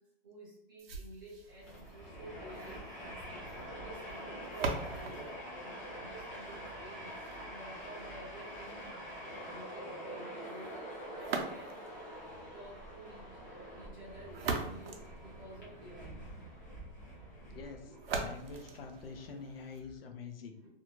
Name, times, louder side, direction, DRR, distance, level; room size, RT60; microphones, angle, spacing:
voice 1, 0.0-8.9 9.2-11.9 12.5-16.6 17.0-19.1 20.6-20.7, right 1 dB, 20° right, -5 dB, 0.5 m, -53 dB
sound 1, 0.8-6.8 11.2-12.0 14.0-16.0 18.0-20.0, right 4 dB, 70° right, 0.6 m, -41 dB
Train, 1.4-19.0, equal, 20° left, 0.7 m, -46 dB
voice 2, 17.5-20.7, left 5 dB, 65° left, 4 dB, 0.6 m, -46 dB
2.5 x 2.2 x 2.9 m, 0.75 s
hypercardioid pair, 175°, 31 cm